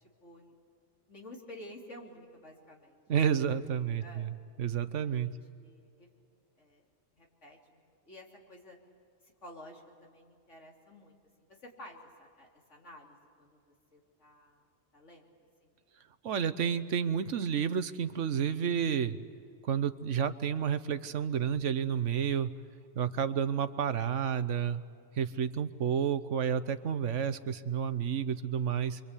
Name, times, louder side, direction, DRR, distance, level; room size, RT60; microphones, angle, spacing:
voice 1, 0.2-0.5 1.1-3.0 4.0-4.3 5.0-5.1 5.6-6.1 6.6-6.8 7.2-7.8 8.1-8.8 9.2-13.6 13.9-14.6 14.9-15.3 15.6-15.7, left 1 dB, 75° left, -1 dB, 3.8 m, -51 dB
voice 2, 3.1-5.3 16.2-19.2 19.6-22.5 22.9-24.8 25.2-29.0, right 8 dB, 80° right, 12 dB, 1.3 m, -30 dB
27.5 x 24.5 x 8.4 m, 2.2 s
omnidirectional pair, 1.2 m